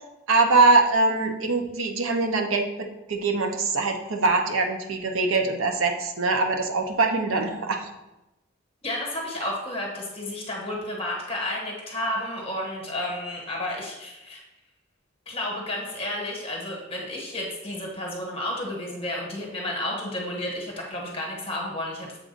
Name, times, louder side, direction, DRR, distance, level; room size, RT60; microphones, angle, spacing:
voice 1, 0.3-7.9, right 3 dB, 80° right, 4 dB, 0.7 m, -23 dB
voice 2, 8.8-14.4 15.3-22.2, left 1 dB, 30° left, -1 dB, 1.3 m, -31 dB
7.3 x 2.5 x 5.2 m, 0.95 s
head